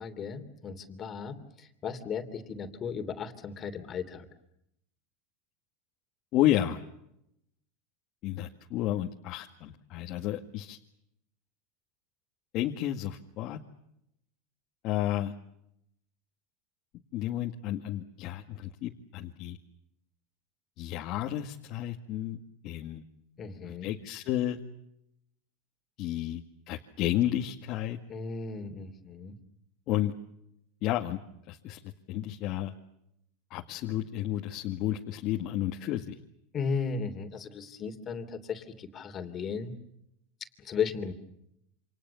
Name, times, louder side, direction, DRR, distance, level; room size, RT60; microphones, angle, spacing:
voice 1, 0.0-4.2 23.4-23.9 28.1-29.3 36.5-39.7 40.6-41.1, left 6 dB, 25° left, 8 dB, 3.1 m, -35 dB
voice 2, 6.3-6.8 8.2-10.8 12.5-13.6 14.8-15.3 17.1-19.6 20.8-23.0 23.6-24.6 26.0-28.0 29.9-30.1 30.8-31.2 31.5-31.8 32.1-32.7 33.5-36.2, left 13 dB, 45° left, 2 dB, 2.0 m, -31 dB
29.0 x 27.5 x 7.1 m, 0.80 s
supercardioid pair, 140°, 0 cm